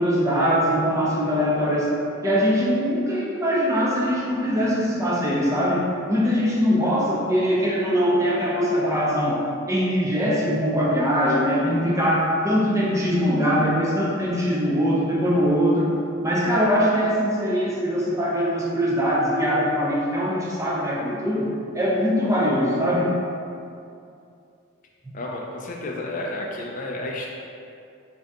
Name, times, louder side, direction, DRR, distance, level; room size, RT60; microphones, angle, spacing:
voice 1, 0.0-1.9 2.2-15.9 16.2-23.2, equal, 15° right, -5 dB, 0.5 m, -22 dB
voice 2, 25.1-27.3, left 2 dB, 40° left, -1 dB, 0.3 m, -31 dB
3.7 x 2.7 x 3.4 m, 2.5 s
head